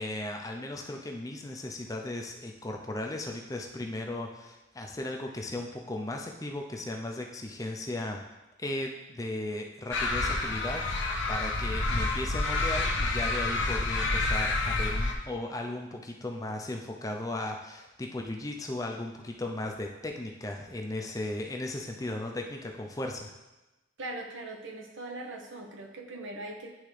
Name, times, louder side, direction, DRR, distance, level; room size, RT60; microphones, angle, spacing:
voice 1, 0.0-8.2 8.6-23.3, left 1 dB, 20° left, 2 dB, 0.5 m, -36 dB
sound 1, 9.9-15.1, left 2 dB, 80° left, 0.8 m, -28 dB
voice 2, 24.0-26.7, right 2 dB, 90° right, 2 dB, 1.0 m, -40 dB
10.5 x 3.6 x 3.3 m, 1.0 s
head